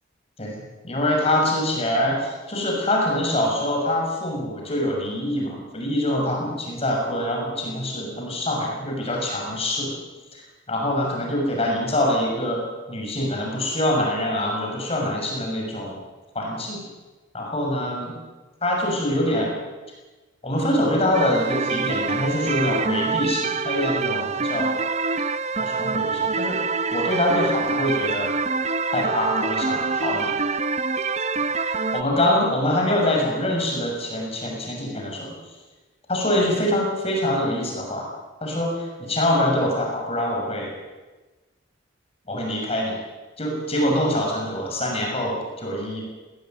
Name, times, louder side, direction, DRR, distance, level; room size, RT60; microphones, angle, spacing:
voice 1, 0.4-9.9 10.3-10.4 10.7-16.0 16.3-16.8 17.3-18.1 18.6-19.5 20.4-24.7 25.6-26.6 26.9-28.3 28.9-30.3 31.7-35.3 36.1-38.1 38.4-40.7 42.3-42.9 43.4-46.0, left 1 dB, 30° left, -1 dB, 6.6 m, -24 dB
sound 1, 21.1-32.0, right 4 dB, 35° right, 0.7 m, -25 dB
19.5 x 19.0 x 9.3 m, 1.2 s
head